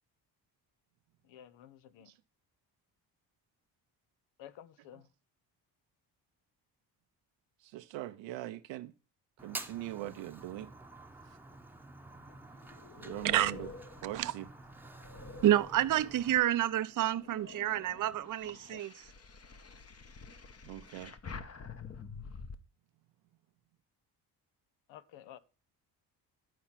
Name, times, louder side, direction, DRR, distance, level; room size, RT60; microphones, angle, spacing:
voice 1, 1.2-2.1 4.4-5.1 24.9-25.4, left 11 dB, 85° left, 0.9 m, -52 dB
voice 2, 7.6-8.9 9.4-10.7 13.0-13.7 14.0-14.5 20.6-21.1, right 15 dB, 90° right, 0.8 m, -41 dB
Fire, 9.4-16.4, right 2 dB, 5° right, 0.9 m, -49 dB
sound 1, 12.1-16.4 16.9-22.6, left 5 dB, 35° left, 1.0 m, -48 dB
voice 3, 15.4-18.9, right 13 dB, 45° right, 0.6 m, -29 dB
10.5 x 4.5 x 5.8 m
cardioid pair, 75°, 44 cm